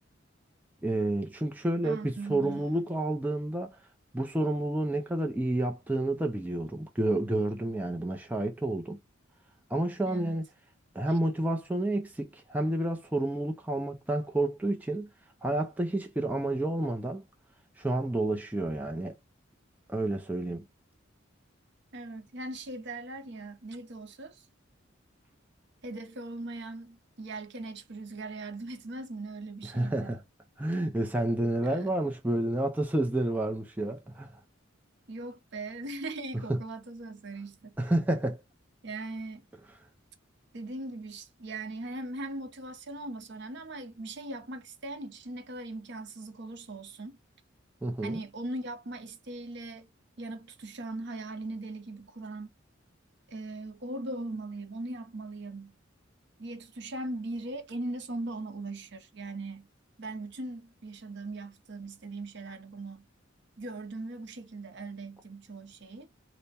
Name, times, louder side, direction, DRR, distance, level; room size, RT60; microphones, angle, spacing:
voice 1, 0.8-3.8 4.1-9.0 9.7-10.4 10.9-15.1 15.4-17.2 17.8-19.1 19.9-20.6 29.7-30.2 30.6-34.3 36.5-36.6 37.8-38.4 47.8-48.2, right 1 dB, 10° right, 0.4 m, -30 dB
voice 2, 1.8-2.7 10.1-10.4 21.9-24.5 25.8-30.2 31.6-31.9 35.1-37.8 38.8-39.4 40.5-47.2 48.0-49.9 50.2-52.5 53.3-55.8 56.4-59.7 60.0-63.1 63.6-66.1, right 2 dB, 60° right, 0.7 m, -39 dB
3.3 x 2.1 x 4.1 m
head